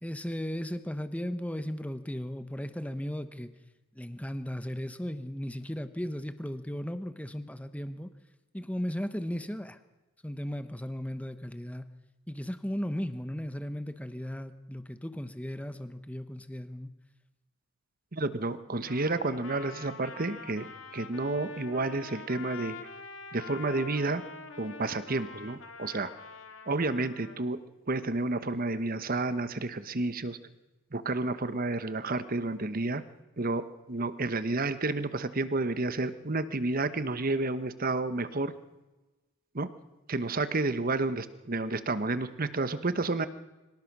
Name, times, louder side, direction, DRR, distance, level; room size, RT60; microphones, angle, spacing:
voice 1, 0.0-3.5 3.9-8.1 8.5-9.8 10.2-11.8 12.3-16.9, equal, 5° left, 11 dB, 1.0 m, -36 dB
voice 2, 18.1-22.8 23.3-24.2 24.6-26.1 26.7-27.6 27.9-30.4 30.9-33.0 33.4-38.5 39.5-39.7 40.1-43.3, right 2 dB, 45° right, 13 dB, 1.1 m, -30 dB
Trumpet, 18.9-27.4, left 5 dB, 70° left, 2.1 m, -45 dB
24.5 x 18.0 x 6.1 m, 1.1 s
head